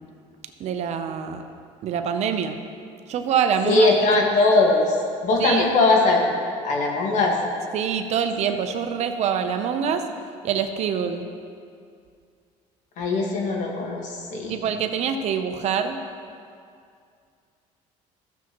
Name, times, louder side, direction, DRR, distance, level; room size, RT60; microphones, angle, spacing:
voice 1, 0.6-1.4 1.8-2.6 3.1-3.9 5.4-5.7 7.7-10.0 10.4-11.3 14.5-16.0, right 7 dB, 55° right, 7 dB, 0.7 m, -25 dB
voice 2, 3.6-4.9 5.2-7.3 13.0-14.6, left 3 dB, 65° left, 0 dB, 1.8 m, -20 dB
14.5 x 7.2 x 3.1 m, 2.3 s
cardioid pair, 120°, 13 cm